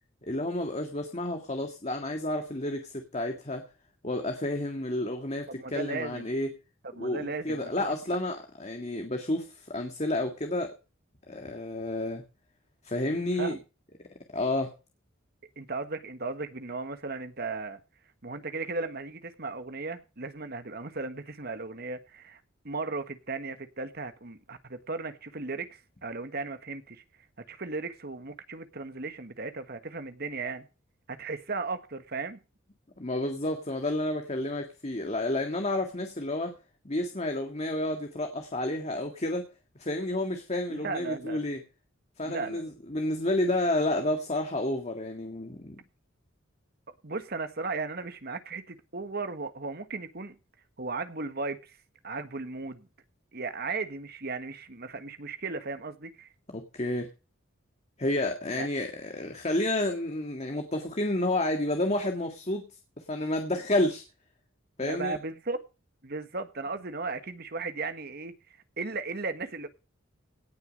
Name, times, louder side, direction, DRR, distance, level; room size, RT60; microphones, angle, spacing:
voice 1, 0.2-3.6 4.0-6.5 7.0-10.8 11.3-12.2 12.8-13.6 14.0-14.7 33.0-36.6 36.8-39.4 39.8-41.6 42.2-45.8 56.5-57.1 58.0-62.7 63.1-64.0 64.8-65.2, left 1 dB, 35° left, 1.9 m, -30 dB
voice 2, 5.5-6.3 6.9-7.7 13.3-13.6 15.6-17.8 18.2-27.0 27.5-30.7 31.1-32.4 40.7-41.4 42.2-42.6 47.0-50.3 50.8-51.8 52.0-52.9 53.3-56.3 58.5-58.7 64.8-65.6 66.0-68.3 68.8-69.7, right 3 dB, 50° right, 1.5 m, -36 dB
18.0 x 6.7 x 5.3 m
head